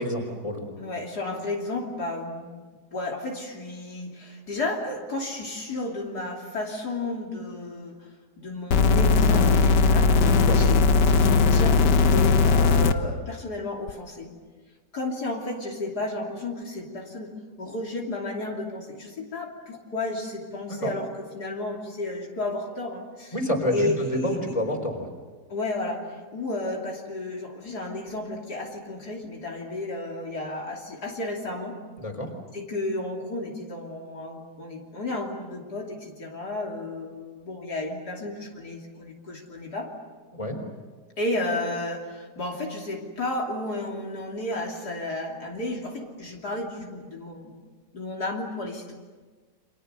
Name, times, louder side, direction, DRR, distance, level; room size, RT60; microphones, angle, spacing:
voice 1, 0.0-0.6 10.5-10.6 20.7-20.9 23.3-25.1 32.0-32.3 40.3-40.6, left 1 dB, 20° left, 4 dB, 4.2 m, -28 dB
voice 2, 0.8-8.0 8.4-10.2 10.5-14.3 14.9-17.3 17.6-23.4 23.7-24.4 25.5-31.8 32.5-39.9 41.2-47.5 47.9-48.9, left 2 dB, 70° left, -1 dB, 3.5 m, -32 dB
sound 1, 8.7-12.9 13.9-14.0, left 4 dB, 85° left, 1.8 m, -18 dB
29.5 x 25.5 x 6.8 m, 1.4 s
omnidirectional pair, 1.8 m